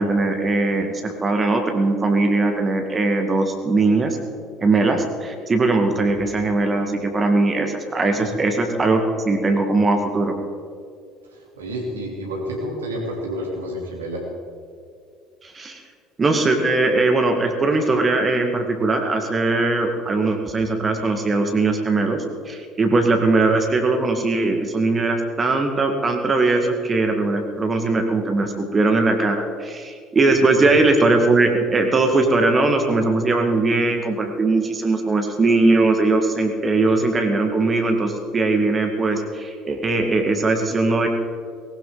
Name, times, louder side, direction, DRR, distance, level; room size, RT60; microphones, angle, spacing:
voice 1, 0.0-4.2 4.6-10.3 15.4-15.8 16.2-41.1, right 3 dB, 25° right, 4 dB, 1.9 m, -20 dB
voice 2, 11.3-14.2, equal, 75° right, -2 dB, 3.4 m, -29 dB
19.5 x 18.0 x 4.0 m, 2.2 s
figure-of-eight pair, 60°, 0 cm